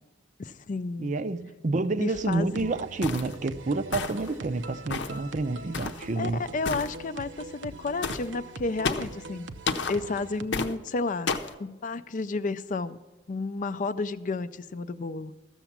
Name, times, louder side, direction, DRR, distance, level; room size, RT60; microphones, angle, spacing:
voice 1, 0.4-1.2 2.0-2.5 6.2-9.5 9.9-11.3 11.6-13.0 13.3-15.3, left 3 dB, 45° left, 0.4 m, -31 dB
voice 2, 1.0-6.4, right 3 dB, 45° right, 0.5 m, -29 dB
sound 1, 2.1-10.4, right 3 dB, 85° right, 0.7 m, -43 dB
sound 2, 3.0-3.3 3.9-4.3 4.9-5.2 5.7-6.0 6.6-6.9 8.0-8.3 8.8-9.1 9.7-10.0 10.5-10.7 11.3-11.5, left 4 dB, 75° left, 0.8 m, -30 dB
13.5 x 6.9 x 7.2 m
head